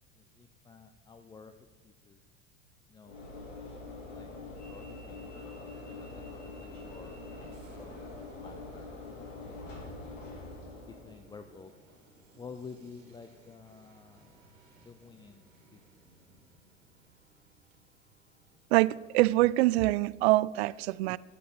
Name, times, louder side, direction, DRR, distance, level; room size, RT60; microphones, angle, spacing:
voice 1, 0.1-1.5 1.8-2.2 2.9-3.2 4.1-4.3 4.7-7.2 7.4-7.9 8.4-8.9 9.4-10.2 10.8-11.7 12.3-14.4 14.8-15.4 15.7-15.8, left 5 dB, 10° left, 0.5 m, -51 dB
Train / Engine / Alarm, 3.0-11.3, left 3 dB, 70° left, 2.8 m, -44 dB
sound 1, 5.1-18.9, right 2 dB, 80° right, 1.9 m, -61 dB
voice 2, 18.7-21.2, right 18 dB, 55° right, 0.4 m, -25 dB
14.5 x 11.0 x 3.9 m
figure-of-eight pair, 75°, 39 cm